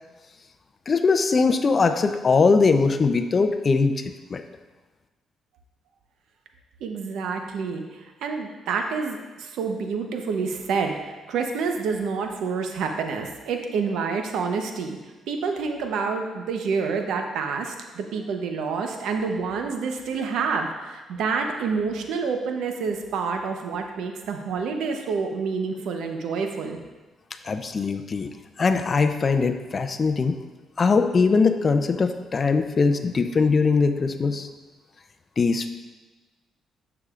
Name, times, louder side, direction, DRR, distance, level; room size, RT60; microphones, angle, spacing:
voice 1, 0.9-4.4 27.4-28.3 28.6-30.4 30.8-34.5 35.4-35.7, left 4 dB, 40° left, 8 dB, 0.5 m, -21 dB
voice 2, 6.8-15.0 15.3-26.8, right 5 dB, 80° right, 4 dB, 0.8 m, -28 dB
9.7 x 6.9 x 2.5 m, 1.2 s
cardioid pair, 90°, 0 cm